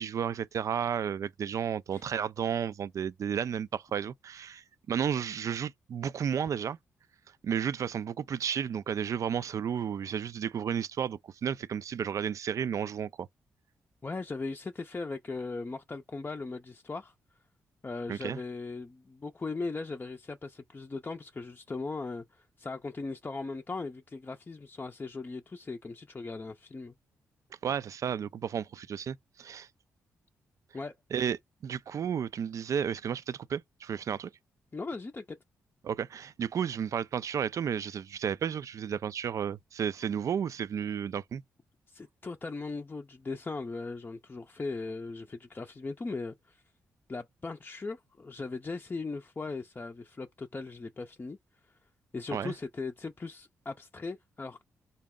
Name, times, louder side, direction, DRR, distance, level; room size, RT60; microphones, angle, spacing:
voice 1, 0.0-6.8 7.4-13.3 18.1-18.4 27.6-29.7 31.1-31.4 31.6-34.3 35.8-41.4 52.3-52.5, right 8 dB, 60° right, 0.4 m, -32 dB
voice 2, 14.0-17.1 17.8-26.9 30.7-30.9 31.2-31.3 34.7-35.4 41.9-46.6 47.1-51.4 52.1-54.6, left 3 dB, 30° left, 0.5 m, -38 dB
4.0 x 2.1 x 3.6 m
supercardioid pair, 50°, 6 cm